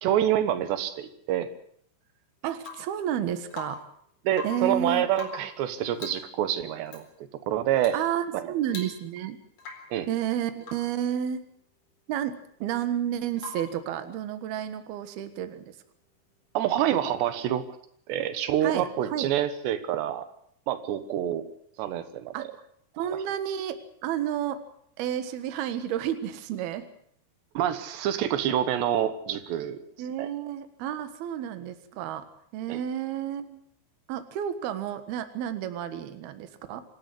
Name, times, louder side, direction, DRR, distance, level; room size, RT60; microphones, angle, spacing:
voice 1, 0.0-1.5 4.3-7.1 7.5-8.0 8.3-8.5 9.9-10.1 16.6-17.6 18.1-20.3 20.7-21.5 21.8-22.3 27.6-29.8 30.2-30.3 32.7-32.8, right 11 dB, 85° right, 10 dB, 3.5 m, -27 dB
voice 2, 2.4-3.8 4.4-5.1 7.9-9.4 10.1-11.4 12.1-15.7 18.6-19.3 22.3-22.5 23.0-24.6 25.0-26.8 30.0-32.3 32.5-33.6 34.1-36.8, right 10 dB, 70° right, 10 dB, 3.3 m, -31 dB
Rain / Water tap faucet / Drip, 2.6-3.0 3.5-4.0 4.3-4.7 5.1-5.6 6.0-6.3 6.9-7.1 7.8-8.1 8.3-8.4 8.7-9.3 9.6-10.0 10.6-11.0 13.4-13.8 15.7-15.8, left 3 dB, 55° left, 5.8 m, -41 dB
26.0 x 13.5 x 8.3 m, 0.66 s
omnidirectional pair, 4.8 m